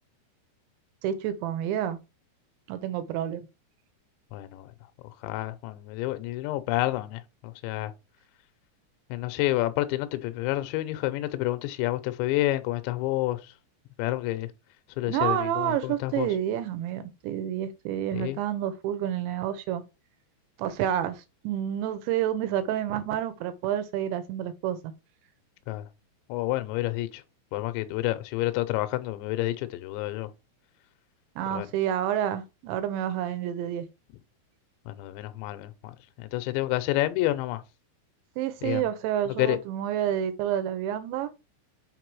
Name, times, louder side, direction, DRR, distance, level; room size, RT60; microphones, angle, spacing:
voice 1, 1.0-2.0 2.7-3.5 15.1-19.8 20.6-24.8 31.4-33.9 38.4-41.3, right 10 dB, 80° right, 3.0 m, -29 dB
voice 2, 4.3-4.7 5.2-7.9 9.1-13.5 14.0-14.5 15.0-16.3 18.1-18.4 25.7-25.9 26.3-27.2 27.5-30.3 31.5-31.7 34.9-37.6 38.6-38.9 39.4-39.6, left 16 dB, 80° left, 2.8 m, -29 dB
6.7 x 4.6 x 4.7 m
omnidirectional pair, 5.4 m